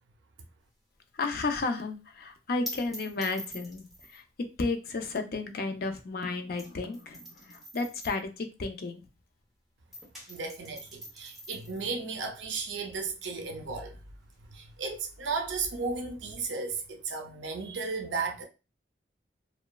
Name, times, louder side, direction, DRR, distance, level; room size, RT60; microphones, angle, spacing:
sound 1, 0.6-9.5 9.8-17.0, left 1 dB, ahead, 0.7 m, -48 dB
voice 1, 1.1-9.0, left 3 dB, 55° left, 0.4 m, -33 dB
voice 2, 10.3-14.0 14.5-18.5, right 4 dB, 80° right, 0.5 m, -34 dB
2.9 x 2.2 x 2.2 m
head